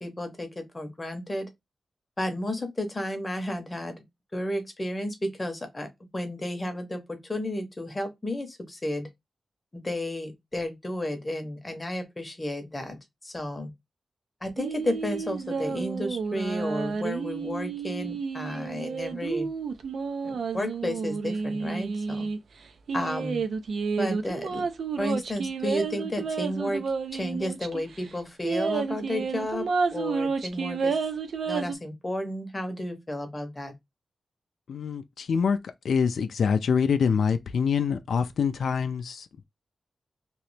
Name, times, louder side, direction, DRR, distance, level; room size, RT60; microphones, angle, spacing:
voice 1, 0.0-1.5 2.2-4.0 4.3-9.1 9.7-13.0 13.2-13.7 14.4-19.5 20.2-22.3 22.9-23.4 24.0-24.6 25.0-26.8 27.1-31.0 31.5-33.7, left 1 dB, 20° left, 0.7 m, -32 dB
sound 1, 14.6-22.4 22.9-27.8 28.1-28.2 28.4-31.7, right 5 dB, 75° right, 0.5 m, -30 dB
voice 2, 34.7-39.4, left 6 dB, 90° left, 0.3 m, -25 dB
3.0 x 2.8 x 3.2 m
wide cardioid pair, 160°, 0 cm